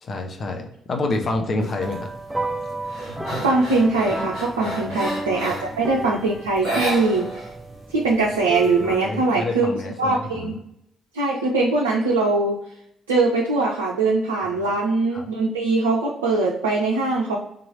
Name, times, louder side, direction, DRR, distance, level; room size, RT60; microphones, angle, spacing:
voice 1, 0.0-2.1 4.6-4.9 5.5-5.6 8.8-10.6 14.6-14.7 15.1-15.2, left 2 dB, 45° left, 3 dB, 0.7 m, -28 dB
sound 1, 1.6-2.0 2.4-5.8 6.5-7.5 7.8-7.9 8.3-9.2, right 1 dB, 80° left, 1.7 m, -32 dB
sound 2, 1.8-9.0, right 2 dB, 10° right, 0.5 m, -32 dB
voice 2, 3.0-7.5 7.9-9.7 10.0-10.5 11.1-12.6 13.1-17.4, right 3 dB, 80° right, -2 dB, 0.5 m, -22 dB
3.7 x 3.0 x 4.6 m, 0.72 s
figure-of-eight pair, 40°, 0 cm